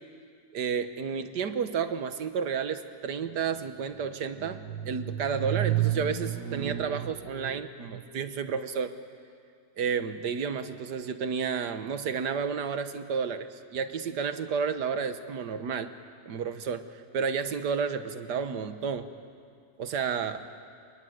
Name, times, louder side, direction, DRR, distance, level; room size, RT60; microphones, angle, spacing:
voice 1, 0.5-8.9 9.8-15.9 16.3-16.9 17.1-19.1 19.8-20.4, right 7 dB, 90° right, 10 dB, 1.8 m, -30 dB
27.5 x 23.0 x 9.4 m, 2.3 s
omnidirectional pair, 1.7 m